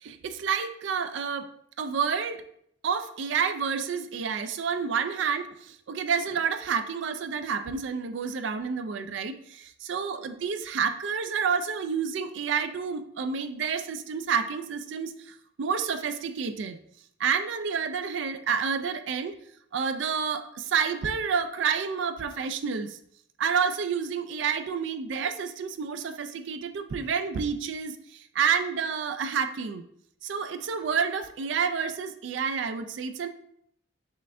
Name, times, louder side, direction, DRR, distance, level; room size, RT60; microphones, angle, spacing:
voice 1, 0.0-1.5 1.8-2.5 2.8-16.8 17.2-19.4 19.7-23.0 23.4-29.9 30.2-33.3, right 6 dB, 65° right, 10 dB, 0.4 m, -29 dB
5.6 x 2.5 x 3.3 m, 0.70 s
head